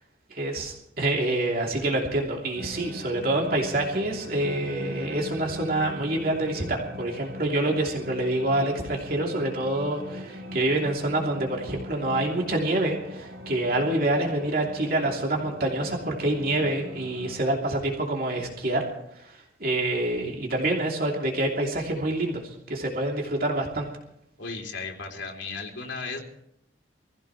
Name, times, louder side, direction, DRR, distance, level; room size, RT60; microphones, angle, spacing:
voice 1, 0.3-18.8 19.6-22.4 22.7-23.9, right 1 dB, 50° right, -1 dB, 2.9 m, -26 dB
sound 1, 2.5-17.4, left 1 dB, 80° right, 3.0 m, -41 dB
voice 2, 24.4-26.2, left 4 dB, 80° left, 0 dB, 3.1 m, -35 dB
25.0 x 15.5 x 3.2 m, 0.76 s
head